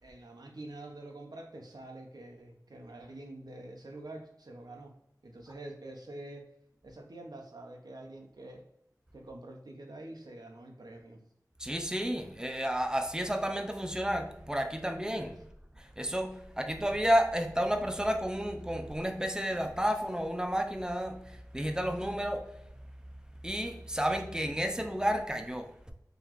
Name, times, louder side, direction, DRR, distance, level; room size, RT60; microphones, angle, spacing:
voice 1, 0.0-4.9 5.2-6.5 6.8-8.6 9.1-11.2, right 2 dB, 85° right, 2 dB, 0.6 m, -46 dB
voice 2, 11.6-15.4 15.8-22.5 23.4-25.7, equal, 10° right, 5 dB, 0.5 m, -31 dB
3.9 x 3.0 x 2.9 m, 0.81 s
wide cardioid pair, 50°, 7 cm